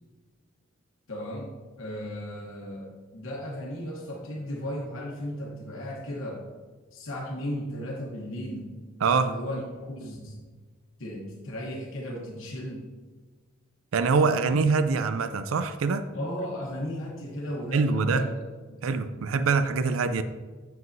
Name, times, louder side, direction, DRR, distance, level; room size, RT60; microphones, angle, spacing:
voice 1, 1.1-6.4 6.9-8.7 9.2-10.4 11.0-12.9 16.1-19.0, equal, 75° left, -2 dB, 1.1 m, -36 dB
voice 2, 9.0-9.3 13.9-16.1 17.7-18.2 18.8-20.2, right 4 dB, 90° right, 11 dB, 0.4 m, -24 dB
7.7 x 7.4 x 2.6 m, 1.4 s
head